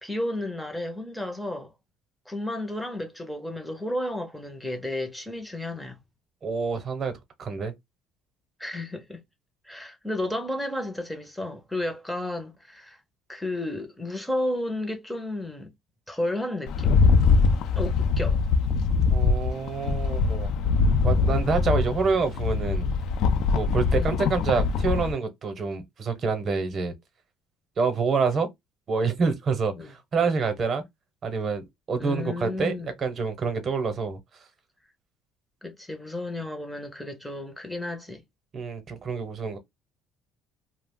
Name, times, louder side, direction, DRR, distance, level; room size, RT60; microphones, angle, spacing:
voice 1, 0.0-1.7 2.3-6.0 8.6-9.2 9.6-13.0 13.3-15.7 16.1-17.0 17.8-18.4 23.9-24.2 29.8-29.9 32.0-32.9 35.6-38.2, left 1 dB, 5° left, 0.6 m, -32 dB
voice 2, 6.4-7.1 7.4-7.7 19.1-20.5 21.0-22.9 23.5-26.9 27.8-28.5 28.9-30.8 31.2-34.2 38.5-39.6, right 4 dB, 40° right, 0.8 m, -27 dB
Rattle, 16.7-25.1, left 4 dB, 65° left, 0.4 m, -23 dB
2.4 x 2.1 x 3.6 m
cardioid pair, 110°, 0 cm